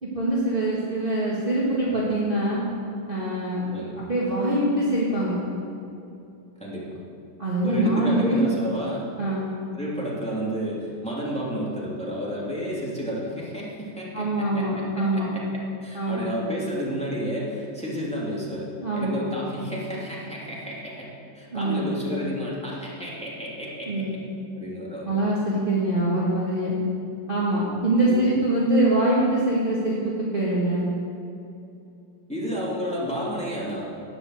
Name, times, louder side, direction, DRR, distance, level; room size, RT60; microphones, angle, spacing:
voice 1, 0.0-2.6 3.1-3.6 4.0-5.4 7.4-8.4 9.2-9.5 14.1-15.3 15.9-16.3 18.8-19.2 21.5-21.9 23.9-24.2 25.1-26.8 27.3-30.9, right 1 dB, 25° right, -7 dB, 2.1 m, -24 dB
voice 2, 6.6-6.9 7.6-9.0 9.7-24.2 24.6-25.2 25.9-26.1 28.0-28.3 32.3-33.8, equal, 5° left, -6 dB, 2.9 m, -31 dB
11.5 x 9.7 x 7.9 m, 2.7 s
omnidirectional pair, 2.4 m